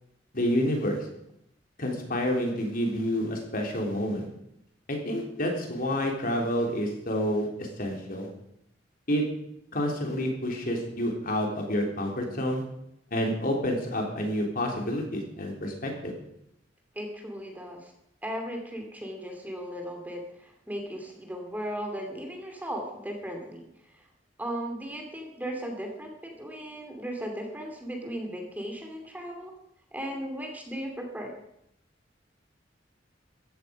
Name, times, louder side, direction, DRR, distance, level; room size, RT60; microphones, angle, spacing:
voice 1, 0.3-1.1 1.8-4.3 4.9-8.3 9.1-9.2 9.7-12.6 13.1-16.1, equal, 50° left, 1 dB, 3.7 m, -29 dB
voice 2, 16.9-17.9 18.2-24.1 24.4-29.5 29.9-31.3, equal, 10° right, 3 dB, 2.6 m, -37 dB
16.0 x 14.5 x 5.3 m, 0.78 s
head